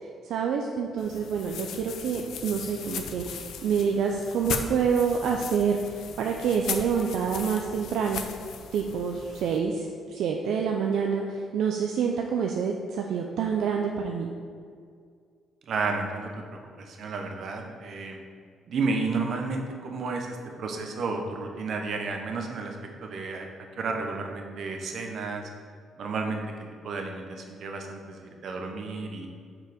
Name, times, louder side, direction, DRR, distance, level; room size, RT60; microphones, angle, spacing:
voice 1, 0.2-8.2 8.7-14.3, right 6 dB, 80° right, 1 dB, 0.5 m, -27 dB
sound 1, 1.0-9.6, left 7 dB, 80° left, 0.6 m, -38 dB
voice 2, 15.7-18.2 18.7-23.5 23.8-25.5 26.0-26.4 26.8-29.3, right 4 dB, 60° right, 3 dB, 0.9 m, -32 dB
5.8 x 4.7 x 5.1 m, 2.1 s
cardioid pair, 90°, 0 cm